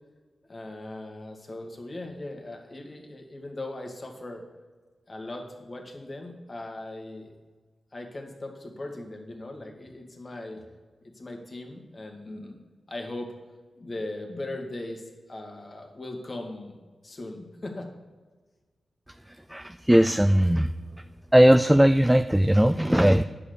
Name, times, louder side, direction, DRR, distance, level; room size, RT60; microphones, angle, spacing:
voice 1, 0.5-4.4 5.1-7.3 7.9-10.6 11.0-12.6 12.9-13.3 13.8-16.8 17.0-17.9, left 2 dB, 45° left, 2 dB, 2.0 m, -39 dB
voice 2, 19.3-20.7 21.3-23.2, equal, 10° right, 9 dB, 0.4 m, -19 dB
9.9 x 6.5 x 6.8 m, 1.4 s
cardioid pair, 55°, 0 cm